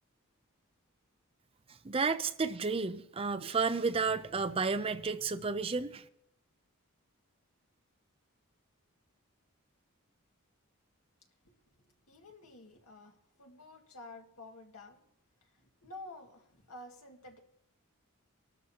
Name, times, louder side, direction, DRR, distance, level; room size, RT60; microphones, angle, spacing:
voice 1, 1.8-6.0, right 4 dB, 25° right, 0.5 m, -32 dB
voice 2, 12.1-15.0 15.6-17.4, left 2 dB, 80° left, 2.0 m, -51 dB
25.0 x 12.5 x 2.9 m
head